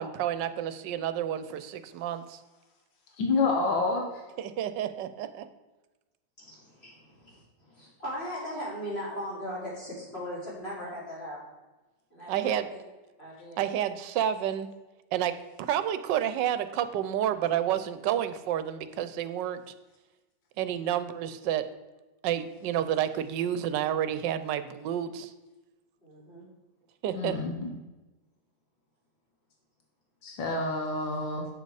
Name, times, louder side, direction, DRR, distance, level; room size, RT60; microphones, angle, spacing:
voice 1, 0.0-2.4 4.4-5.5 12.3-12.7 13.6-14.7 15.1-19.6 20.6-21.7 22.2-25.3 27.0-27.4, right 10 dB, 75° right, 12 dB, 1.3 m, -30 dB
voice 2, 3.2-4.2 27.1-27.7 30.2-31.5, left 3 dB, 85° left, 1 dB, 1.9 m, -28 dB
voice 3, 6.4-11.4 12.1-12.8 13.2-13.7 26.0-26.5, equal, 30° left, -6 dB, 3.8 m, -39 dB
8.5 x 6.6 x 4.8 m, 1.1 s
omnidirectional pair, 2.0 m